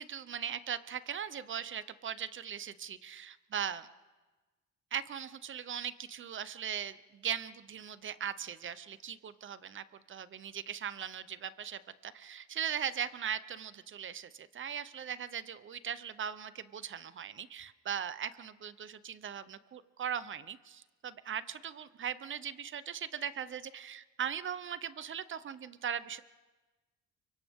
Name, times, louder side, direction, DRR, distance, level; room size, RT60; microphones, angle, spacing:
voice 1, 0.0-3.9 4.9-26.2, right 8 dB, 40° right, 15 dB, 0.8 m, -39 dB
29.0 x 24.5 x 3.7 m, 1.2 s
cardioid pair, 140°, 30 cm